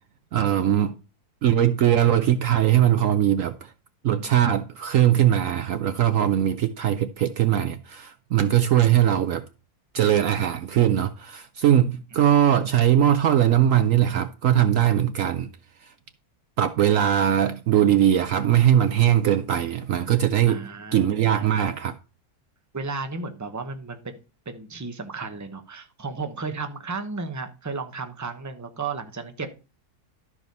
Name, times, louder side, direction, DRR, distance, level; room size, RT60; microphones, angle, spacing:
voice 1, 0.3-1.0 1.4-3.7 4.0-9.4 9.9-15.5 16.6-20.6 20.9-21.9, right 10 dB, 65° right, 0.9 m, -20 dB
voice 2, 20.5-21.2 22.7-24.2 24.5-29.5, right 4 dB, 15° right, 0.8 m, -34 dB
12.0 x 5.0 x 5.3 m
omnidirectional pair, 1.7 m